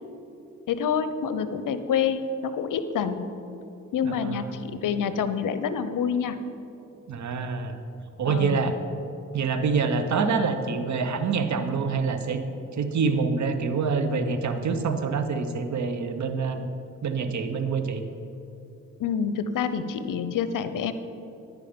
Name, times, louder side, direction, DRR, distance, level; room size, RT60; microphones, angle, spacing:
voice 1, 0.7-3.3 3.9-6.4 8.3-8.6 19.0-20.9, left 7 dB, 70° left, 11 dB, 0.6 m, -27 dB
voice 2, 4.0-4.5 7.1-7.8 8.2-8.8 9.3-12.4 12.8-16.7 17.0-18.0, right 5 dB, 55° right, 8 dB, 0.8 m, -26 dB
10.0 x 4.9 x 5.1 m, 2.8 s
cardioid pair, 60°, 33 cm